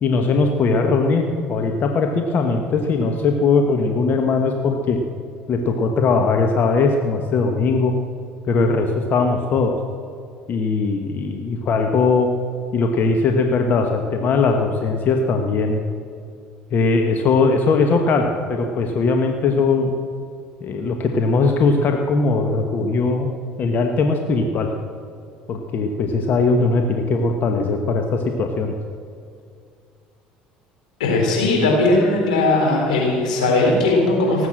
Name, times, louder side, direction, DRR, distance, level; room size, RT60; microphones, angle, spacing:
voice 1, 0.0-5.0 5.5-7.9 8.5-9.7 10.5-12.3 12.7-15.8 16.7-19.9 20.6-23.3 23.6-24.7 25.5-28.7, left 4 dB, 50° left, 4 dB, 1.3 m, -19 dB
voice 2, 31.0-34.5, left 2 dB, 90° left, -1 dB, 3.9 m, -18 dB
18.0 x 8.2 x 7.6 m, 2.3 s
hypercardioid pair, 70°, 4 cm